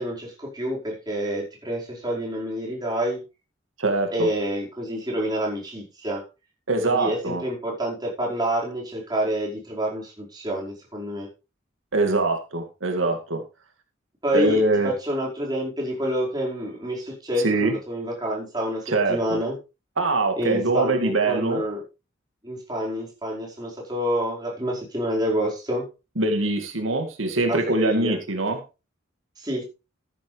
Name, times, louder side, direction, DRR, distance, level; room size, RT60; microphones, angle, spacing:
voice 1, 0.0-3.2 4.1-6.2 6.8-11.3 14.2-19.5 20.4-21.8 22.4-25.8 27.5-28.2 29.4-29.6, equal, 20° right, -3 dB, 5.1 m, -28 dB
voice 2, 3.8-4.3 6.7-7.4 11.9-13.4 14.3-14.9 17.4-17.7 18.9-19.4 20.0-21.6 26.2-28.6, right 2 dB, 85° right, 4 dB, 2.2 m, -23 dB
14.0 x 9.9 x 3.4 m, 0.30 s
head